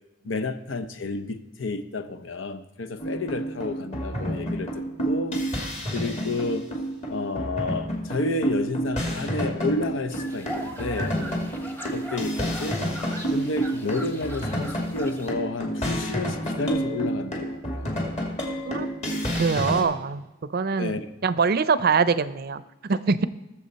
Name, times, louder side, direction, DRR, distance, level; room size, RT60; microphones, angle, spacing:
voice 1, 0.2-5.4 5.9-6.7 7.1-11.2 11.9-12.8 13.3-18.2 20.8-21.0, left 2 dB, 80° left, 9 dB, 0.8 m, -30 dB
sound 1, 3.0-19.8, equal, 35° left, 2.2 m, -29 dB
sound 2, 10.1-15.3, equal, 10° left, 1.1 m, -39 dB
voice 2, 19.4-20.2 20.5-23.2, right 5 dB, 55° right, 14 dB, 0.5 m, -24 dB
19.5 x 7.0 x 4.1 m, 1.0 s
head